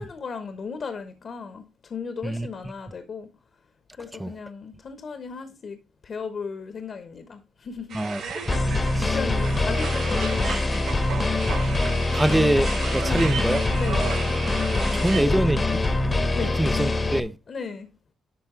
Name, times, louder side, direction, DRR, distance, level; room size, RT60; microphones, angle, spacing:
voice 1, 0.0-3.3 4.0-5.8 6.0-8.0 9.1-10.9 13.0-13.3 13.7-14.3 14.7-15.5 16.3-16.5 17.5-17.9, left 5 dB, 50° left, 1.1 m, -35 dB
voice 2, 7.9-8.5 8.9-9.2 12.1-12.7 12.9-13.6 14.9-15.6 16.6-17.3, right 1 dB, 10° right, 0.5 m, -24 dB
sound 1, 7.9-15.2, right 5 dB, 75° right, 2.5 m, -35 dB
sound 2, 8.5-17.2, left 2 dB, 25° left, 1.0 m, -24 dB
11.5 x 3.9 x 3.8 m
cardioid pair, 90°, 0 cm